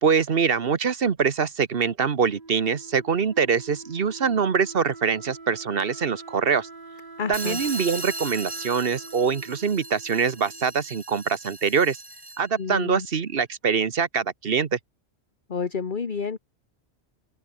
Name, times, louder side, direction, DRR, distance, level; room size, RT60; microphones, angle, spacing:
voice 1, 0.0-6.7 7.3-12.0 12.4-14.8, right 6 dB, 60° right, 1.3 m, -24 dB
Wind instrument woodwind instrument, 2.2-10.9, right 3 dB, 40° right, 2.0 m, -45 dB
voice 2, 7.2-7.6 12.6-13.1 15.5-16.4, left 5 dB, 50° left, 1.4 m, -29 dB
sound 1, 7.3-12.6, right 1 dB, 20° right, 2.6 m, -38 dB
open air
omnidirectional pair, 1.1 m